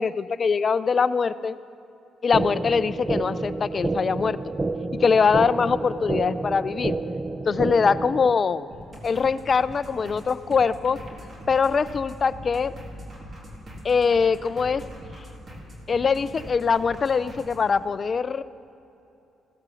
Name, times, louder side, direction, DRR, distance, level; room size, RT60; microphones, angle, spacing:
voice 1, 0.0-1.6 2.2-4.4 5.0-7.0 7.4-8.6 9.0-11.0 11.5-12.7 13.8-14.8 15.9-18.4, left 5 dB, 40° left, 15 dB, 0.5 m, -22 dB
sound 1, 2.3-8.3, right 3 dB, 20° right, 0.6 m, -29 dB
sound 2, 8.7-17.6, equal, 35° right, 3.2 m, -42 dB
15.5 x 13.0 x 7.1 m, 2.9 s
cardioid pair, 90°, 0 cm